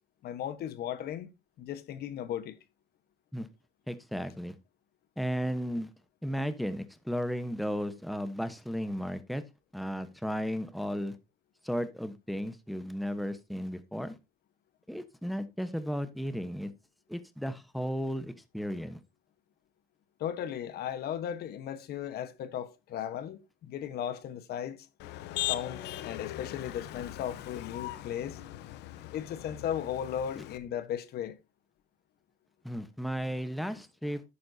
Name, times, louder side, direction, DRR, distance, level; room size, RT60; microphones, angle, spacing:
voice 1, 0.2-1.3 1.6-2.5 20.2-23.4 23.7-24.8 25.5-25.8 26.0-28.4 29.1-31.3, left 9 dB, 70° left, 1.3 m, -36 dB
voice 2, 3.9-4.5 5.2-5.9 6.2-9.4 9.7-11.2 11.6-14.2 14.9-16.7 17.1-19.0 32.6-34.2, equal, ahead, 1.1 m, -34 dB
Motor vehicle (road), 25.0-30.6, left 15 dB, 90° left, 0.9 m, -39 dB
11.0 x 8.7 x 2.8 m
cardioid pair, 110°, 17 cm